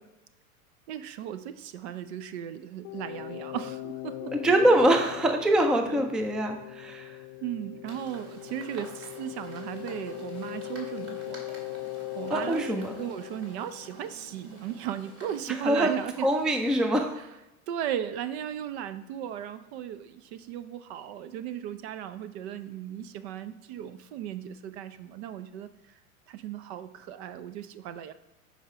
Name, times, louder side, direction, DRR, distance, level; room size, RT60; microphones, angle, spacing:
voice 1, 0.9-4.3 5.9-6.1 7.4-11.4 12.1-16.3 17.7-25.7 26.3-28.1, right 10 dB, 50° right, 12 dB, 0.6 m, -36 dB
sound 1, 2.8-14.5, left 17 dB, 50° left, 0.5 m, -40 dB
voice 2, 4.3-7.1 12.3-12.9 15.6-15.9 16.2-17.1, right 1 dB, ahead, 5 dB, 0.5 m, -24 dB
sound 2, 7.8-16.8, right 1 dB, 30° right, 2.3 m, -49 dB
7.7 x 5.0 x 4.9 m, 0.97 s
hypercardioid pair, 95°, 43 cm